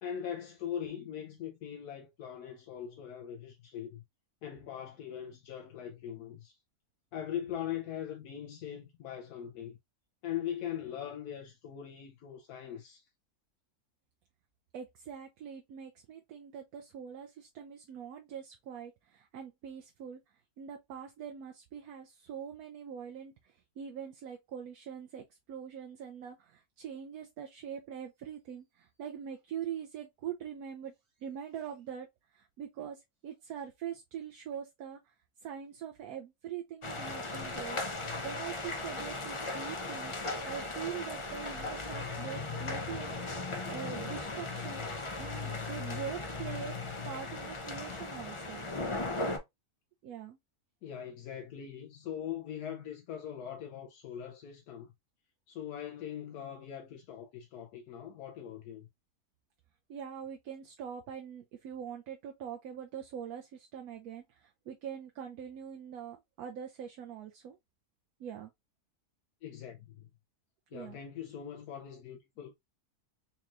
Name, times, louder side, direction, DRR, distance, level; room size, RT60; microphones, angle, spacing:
voice 1, 0.0-4.0 4.4-6.6 7.1-9.8 10.2-13.1 50.8-54.9 55.5-58.9 69.4-70.1 70.7-72.5, left 9 dB, 90° left, 1.2 m, -41 dB
voice 2, 14.7-20.2 20.6-30.9 31.2-32.1 32.3-35.1 35.4-37.8 38.2-40.1 40.5-46.8 47.1-48.7 50.0-50.4 59.9-67.6 68.2-68.5 70.7-71.0, right 8 dB, 80° right, 1.1 m, -43 dB
sound 1, 36.8-49.4, left 2 dB, 35° left, 0.4 m, -37 dB
4.2 x 3.0 x 2.4 m
omnidirectional pair, 1.6 m